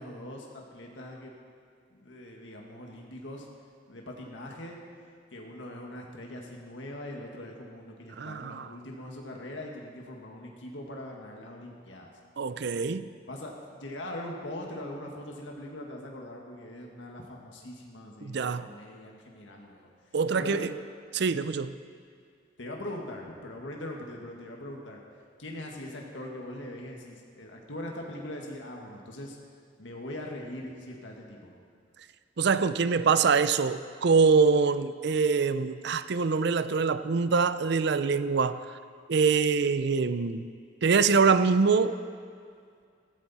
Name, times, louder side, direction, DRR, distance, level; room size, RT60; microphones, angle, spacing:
voice 1, 0.0-1.3 2.0-3.5 3.9-4.8 5.3-12.1 13.3-19.9 20.4-20.7 22.6-25.0 25.4-29.4 29.8-31.5, left 1 dB, 85° left, 0 dB, 1.7 m, -41 dB
voice 2, 8.2-8.7 12.4-13.1 18.2-18.7 20.1-20.7 21.1-21.8 32.4-38.6 39.1-40.5 40.8-42.0, right 5 dB, 65° right, 13 dB, 0.5 m, -24 dB
15.5 x 14.5 x 4.2 m, 2.3 s
head